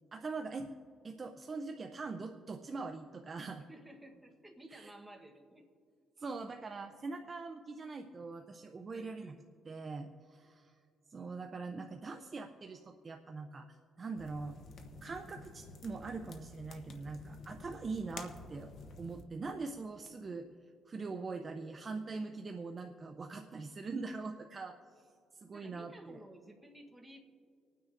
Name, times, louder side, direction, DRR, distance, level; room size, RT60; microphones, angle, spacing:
voice 1, 0.1-0.7 1.0-3.6 4.7-4.9 6.2-9.3 9.6-10.8 11.1-14.6 15.0-18.7 19.0-20.5 20.9-24.7 25.3-26.2, right 4 dB, 25° right, 5 dB, 0.4 m, -42 dB
voice 2, 3.6-5.7 8.9-9.9 25.5-27.2, right 1 dB, 5° right, 0 dB, 1.0 m, -55 dB
sound 1, 14.2-19.2, left 3 dB, 50° left, 0.8 m, -50 dB
25.5 x 9.3 x 2.5 m, 2.4 s
cardioid pair, 160°, 0 cm